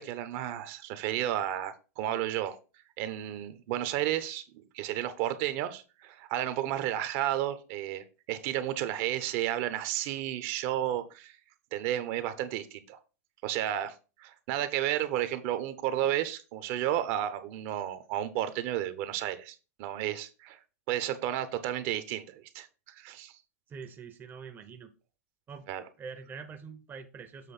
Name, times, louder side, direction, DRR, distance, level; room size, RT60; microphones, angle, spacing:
voice 1, 0.0-2.6 3.0-4.4 4.7-11.4 11.7-13.0 13.4-20.6 20.9-23.3 25.7-25.8, right 12 dB, 50° right, 0.9 m, -32 dB
voice 2, 23.7-24.9 25.5-25.7 26.0-27.5, right 5 dB, 25° right, 0.8 m, -44 dB
7.6 x 3.1 x 5.8 m
hypercardioid pair, 115°, 8 cm